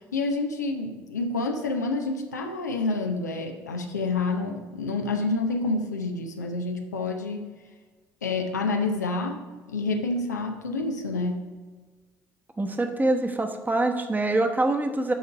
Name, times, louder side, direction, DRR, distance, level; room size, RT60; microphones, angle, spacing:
voice 1, 0.1-7.4 8.2-9.4 9.7-11.5, left 3 dB, 90° left, 3 dB, 0.7 m, -28 dB
voice 2, 12.6-15.1, right 2 dB, 20° right, 5 dB, 1.1 m, -25 dB
11.0 x 3.8 x 4.7 m, 1.4 s
hypercardioid pair, 55°, 9 cm